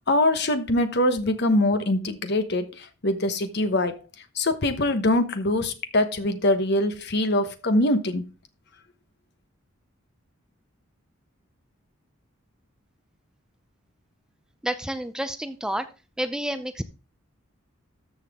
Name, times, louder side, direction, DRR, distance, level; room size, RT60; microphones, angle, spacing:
voice 1, 0.0-4.0 4.3-8.2, left 1 dB, 55° left, 1.0 m, -23 dB
voice 2, 14.6-15.9 16.2-16.8, right 1 dB, 5° right, 0.5 m, -29 dB
13.5 x 5.8 x 3.6 m
head